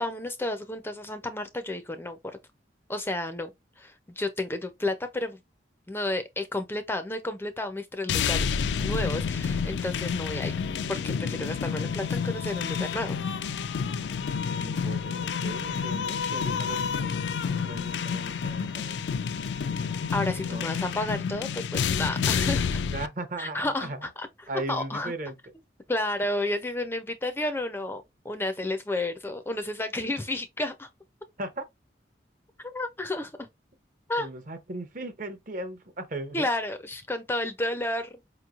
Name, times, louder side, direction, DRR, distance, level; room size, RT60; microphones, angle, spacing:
voice 1, 0.0-2.4 2.9-3.5 3.8-5.4 5.9-8.5 8.8-10.5 10.9-13.2 20.1-22.8 23.4-24.3 24.7-25.1 25.9-30.9 32.6-33.5 34.1-34.3 36.3-38.1, left 1 dB, 15° left, 0.4 m, -31 dB
sound 1, 8.1-23.1, left 6 dB, 80° left, 0.3 m, -29 dB
sound 2, 8.8-20.6, right 1 dB, 85° right, 0.9 m, -51 dB
voice 2, 14.6-17.1 17.6-19.1 20.5-21.0 22.9-24.1 24.5-25.4 31.4-31.7 34.2-36.5, right 2 dB, 45° right, 0.7 m, -37 dB
4.8 x 3.0 x 2.3 m
head